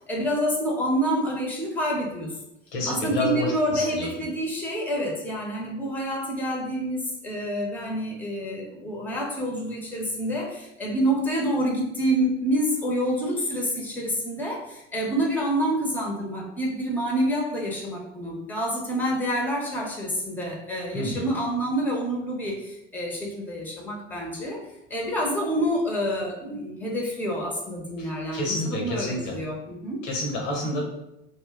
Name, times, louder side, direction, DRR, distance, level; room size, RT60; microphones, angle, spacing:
voice 1, 0.1-2.3 2.9-24.6 24.9-30.0, equal, 5° left, -1 dB, 0.8 m, -27 dB
voice 2, 2.7-4.1 20.9-21.3 28.0-29.4 30.0-30.8, left 2 dB, 70° left, 0 dB, 1.0 m, -29 dB
2.7 x 2.2 x 3.5 m, 0.88 s
figure-of-eight pair, 65°, 38 cm